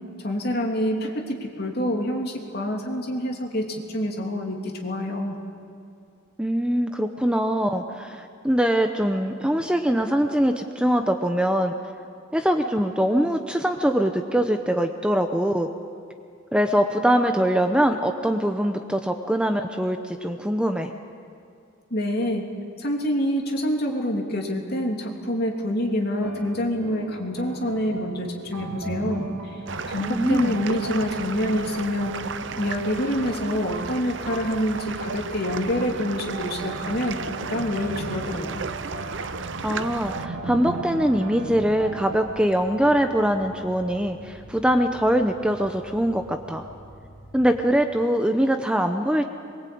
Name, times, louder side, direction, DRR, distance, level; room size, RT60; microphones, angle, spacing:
voice 1, 0.2-5.4 21.9-22.5 22.8-29.6 29.9-32.1 32.6-37.2 37.5-38.6, equal, 50° left, 1 dB, 2.9 m, -26 dB
voice 2, 6.4-11.7 12.3-15.7 16.5-20.9 30.0-30.6 39.6-46.7 47.3-49.3, equal, 5° right, 5 dB, 0.8 m, -23 dB
sound 1, 25.1-25.5 26.2-42.2, right 2 dB, 90° right, 2.0 m, -38 dB
sound 2, 29.7-40.3, right 5 dB, 60° right, 0.7 m, -34 dB
sound 3, 37.6-47.6, right 1 dB, 25° right, 6.1 m, -47 dB
22.5 x 22.0 x 8.6 m, 2.5 s
head